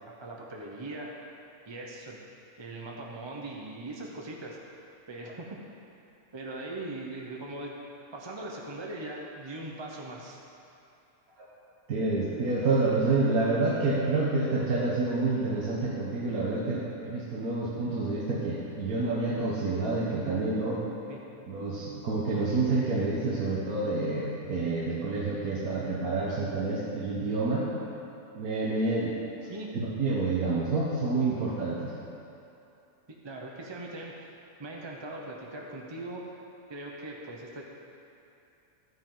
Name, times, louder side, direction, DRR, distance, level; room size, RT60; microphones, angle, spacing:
voice 1, 0.1-1.1 1.7-2.2 2.6-4.6 5.1-5.6 6.3-7.8 8.1-10.4 21.1-21.2 29.5-29.7 33.1-34.3 34.6-36.2 36.7-37.7, right 2 dB, 25° right, -2 dB, 0.7 m, -40 dB
voice 2, 11.9-20.8 21.5-27.6 28.3-29.1 29.7-31.9, right 3 dB, 80° right, -6 dB, 1.6 m, -28 dB
11.5 x 9.4 x 3.9 m, 2.8 s
omnidirectional pair, 1.5 m